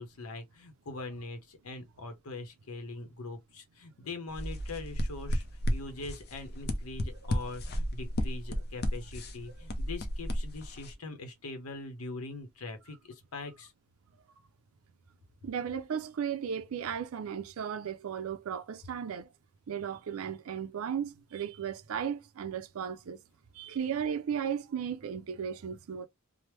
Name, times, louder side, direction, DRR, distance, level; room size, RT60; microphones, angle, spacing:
voice 1, 0.0-5.4 5.7-13.7, left 3 dB, 85° left, 0.7 m, -42 dB
sound 1, 4.3-10.9, equal, 50° left, 0.6 m, -33 dB
voice 2, 15.4-19.3 19.7-23.2 23.5-26.1, right 8 dB, 75° right, 0.4 m, -35 dB
3.2 x 2.0 x 3.0 m
head